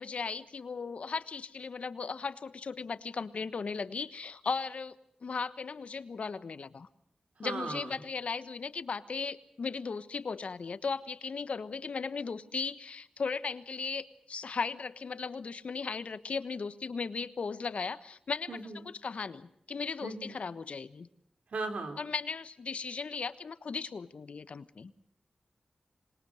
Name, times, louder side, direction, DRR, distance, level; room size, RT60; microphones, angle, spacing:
voice 1, 0.0-5.0 5.2-6.9 7.4-18.6 18.8-21.1 22.0-24.9, left 5 dB, 70° left, 13 dB, 1.2 m, -37 dB
voice 2, 7.4-7.9 18.5-18.8 20.0-20.4 21.5-22.0, right 3 dB, 80° right, 6 dB, 3.9 m, -37 dB
26.0 x 21.5 x 6.5 m, 0.70 s
wide cardioid pair, 95°, 2 cm